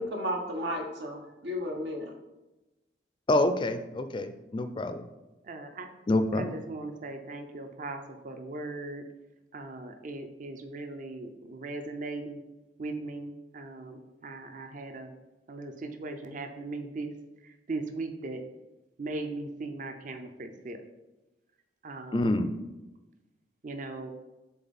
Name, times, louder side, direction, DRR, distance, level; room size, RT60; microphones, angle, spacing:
voice 1, 0.0-2.1, equal, 80° right, 2 dB, 1.1 m, -33 dB
voice 2, 3.3-5.0 6.1-6.5 22.1-22.5, left 1 dB, 30° left, 9 dB, 0.4 m, -27 dB
voice 3, 5.4-5.9 6.3-9.1 9.5-12.4 12.8-15.1 15.5-17.2 17.4-18.4 19.0-20.8 21.8-22.4 23.6-24.1, right 2 dB, 50° right, 7 dB, 0.6 m, -38 dB
6.9 x 3.8 x 4.2 m, 1.0 s
head